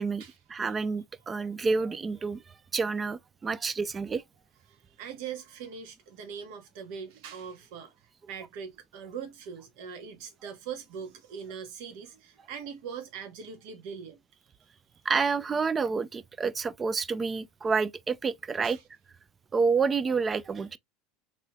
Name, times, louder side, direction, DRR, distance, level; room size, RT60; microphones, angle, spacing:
voice 1, 0.5-2.4 2.7-4.2 15.1-18.8 19.5-20.8, right 4 dB, 25° right, 0.3 m, -28 dB
voice 2, 4.7-8.0 8.3-14.2 18.6-18.8, right 7 dB, 70° right, 1.1 m, -41 dB
3.2 x 2.9 x 2.2 m
supercardioid pair, 105°, 0 cm